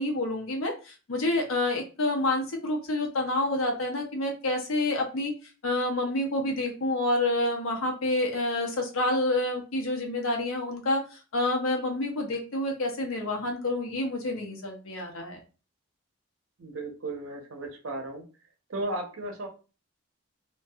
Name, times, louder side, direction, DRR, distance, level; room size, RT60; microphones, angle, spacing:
voice 1, 0.0-5.3 5.6-15.4, left 2 dB, 80° left, 2 dB, 0.7 m, -28 dB
voice 2, 16.6-18.2 18.7-19.5, right 2 dB, 80° right, 2 dB, 0.7 m, -35 dB
2.6 x 2.2 x 2.3 m, 0.34 s
head